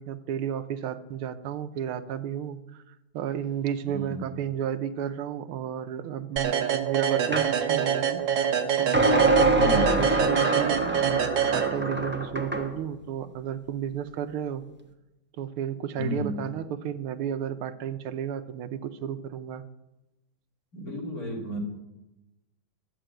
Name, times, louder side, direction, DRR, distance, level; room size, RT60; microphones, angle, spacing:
voice 1, 0.0-2.8 3.1-8.2 8.8-14.6 15.4-19.7, right 9 dB, 85° right, 10 dB, 1.7 m, -32 dB
voice 2, 3.9-4.2 9.5-10.0 15.9-16.4 20.7-21.6, equal, 40° left, -1 dB, 3.2 m, -32 dB
sound 1, 6.4-12.2, right 8 dB, 65° right, 1.7 m, -26 dB
sound 2, 7.3-7.5 8.9-12.7, right 2 dB, 10° right, 0.6 m, -25 dB
13.0 x 8.0 x 9.0 m, 0.99 s
omnidirectional pair, 2.3 m